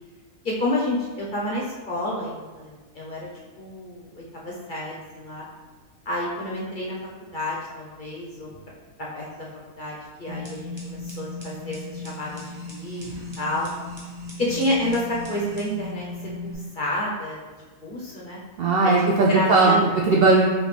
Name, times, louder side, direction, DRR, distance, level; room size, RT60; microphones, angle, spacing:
voice 1, 0.4-3.3 3.6-5.5 6.1-8.5 9.1-9.5 9.8-13.7 14.4-16.1 16.4-17.4 17.8-18.4 18.8-18.9 19.3-19.9 20.2-20.4, left 1 dB, 45° left, -4 dB, 0.7 m, -29 dB
sound 1, 10.3-16.5, left 2 dB, 20° right, 1.0 m, -37 dB
voice 2, 18.6-20.4, right 3 dB, 70° right, -3 dB, 0.5 m, -18 dB
6.2 x 2.6 x 3.2 m, 1.4 s
omnidirectional pair, 1.5 m